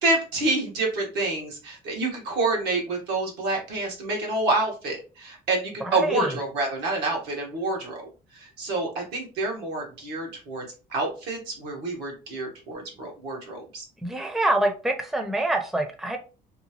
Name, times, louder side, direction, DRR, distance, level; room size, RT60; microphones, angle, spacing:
voice 1, 0.0-13.9, right 2 dB, 85° right, 0 dB, 1.2 m, -28 dB
voice 2, 14.0-16.2, right 1 dB, ahead, 4 dB, 0.5 m, -25 dB
2.8 x 2.3 x 2.8 m, 0.33 s
cardioid pair, 110°, 17 cm